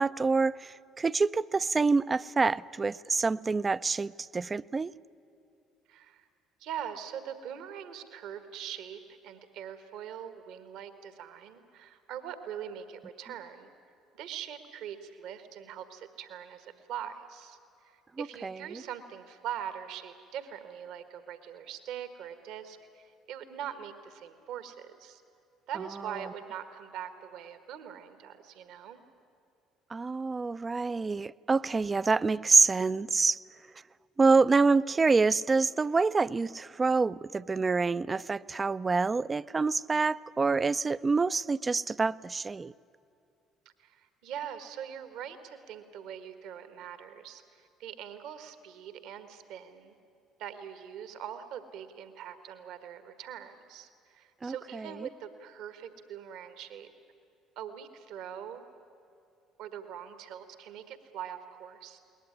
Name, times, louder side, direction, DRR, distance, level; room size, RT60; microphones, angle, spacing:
voice 1, 0.0-4.9 18.2-18.8 26.1-26.3 29.9-33.4 34.2-42.7 54.4-55.1, right 4 dB, 30° right, 0.5 m, -27 dB
voice 2, 5.9-6.3 6.6-13.7 14.1-25.2 25.7-29.0 43.8-49.9 50.4-56.9 57.5-58.6 59.6-62.0, right 9 dB, 65° right, 1.6 m, -42 dB
21.0 x 19.5 x 9.8 m
hypercardioid pair, 55°, 0 cm